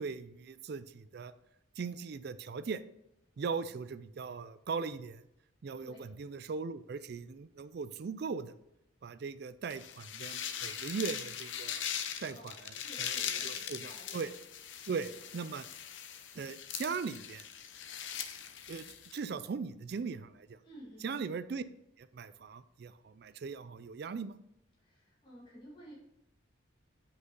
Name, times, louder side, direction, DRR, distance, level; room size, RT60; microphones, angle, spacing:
voice 1, 0.0-1.3 1.8-2.8 3.4-5.2 5.6-8.5 9.0-11.8 12.2-12.7 13.0-13.2 13.4-14.3 14.9-15.7 16.3-17.4 18.7-18.8 19.1-20.6 21.0-21.6 22.0-24.4, right 5 dB, 55° right, 14 dB, 0.4 m, -39 dB
voice 2, 5.8-6.1 12.3-14.3 15.0-15.2 20.6-21.2 24.8-25.9, equal, 25° left, -6 dB, 2.1 m, -53 dB
sound 1, 9.7-19.2, left 9 dB, 70° left, 0.7 m, -40 dB
8.0 x 5.5 x 3.9 m, 0.83 s
head